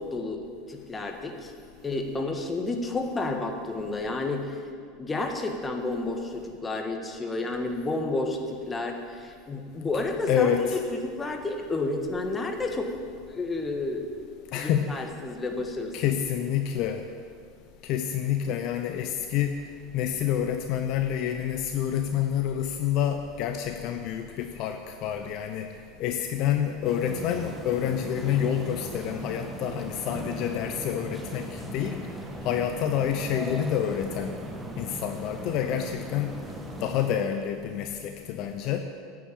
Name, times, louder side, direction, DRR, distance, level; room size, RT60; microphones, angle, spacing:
voice 1, 0.0-1.5 1.8-4.4 5.0-12.9 13.3-14.0 14.5-15.9, left 2 dB, 20° left, 3 dB, 1.6 m, -31 dB
voice 2, 10.3-10.8 14.5-15.1 15.9-17.0 17.8-19.6 19.9-25.7 26.0-32.0 32.4-34.4 34.8-36.4 36.8-38.8, left 9 dB, 55° left, 6 dB, 0.7 m, -28 dB
sound 1, 26.8-37.1, right 1 dB, 15° right, 1.5 m, -38 dB
9.0 x 7.4 x 8.7 m, 2.1 s
hypercardioid pair, 85°, 0 cm